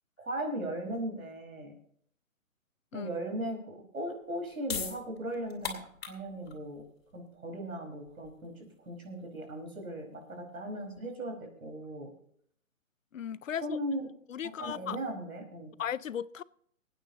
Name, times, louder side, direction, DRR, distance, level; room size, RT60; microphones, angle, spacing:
voice 1, 0.2-1.7 2.9-6.8 7.1-12.1 13.6-14.1 14.6-15.7, right 1 dB, 90° right, 5.0 m, -38 dB
sound 1, 4.2-11.0, left 6 dB, 45° left, 2.7 m, -43 dB
voice 2, 13.1-13.8 14.3-15.0 15.8-16.4, left 9 dB, 65° left, 0.6 m, -36 dB
25.0 x 9.2 x 2.8 m
hypercardioid pair, 165°, 41 cm